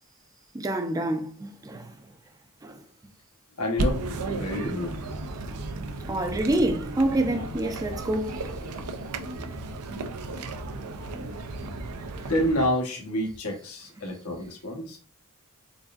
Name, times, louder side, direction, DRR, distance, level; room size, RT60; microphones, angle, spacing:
voice 1, 0.5-2.1 2.6-2.8 6.1-8.4, right 1 dB, 15° right, 0.4 m, -27 dB
voice 2, 3.6-5.0 12.2-15.0, left 1 dB, 75° left, 1.1 m, -28 dB
sound 1, 3.8-12.7, right 2 dB, 90° right, 0.5 m, -34 dB
3.9 x 3.5 x 2.4 m
head